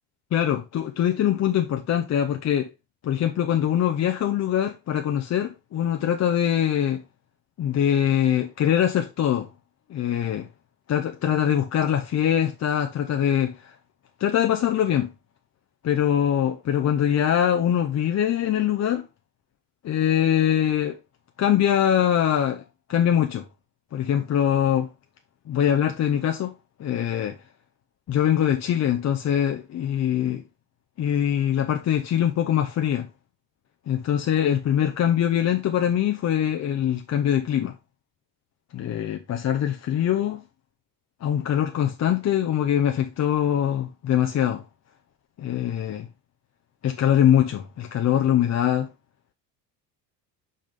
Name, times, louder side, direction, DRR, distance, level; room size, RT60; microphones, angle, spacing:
voice 1, 0.3-2.7 3.0-7.0 7.6-9.5 9.9-10.5 10.9-13.7 14.2-15.1 15.8-19.1 19.8-21.0 21.4-22.6 22.9-23.4 23.9-24.9 25.5-26.5 26.8-27.4 28.1-30.4 31.0-33.1 33.9-37.7 38.7-40.4 41.2-44.6 45.4-46.1 46.8-48.9, left 10 dB, 35° left, 0.7 m, -23 dB
5.6 x 5.0 x 3.7 m
hypercardioid pair, 70°, 50 cm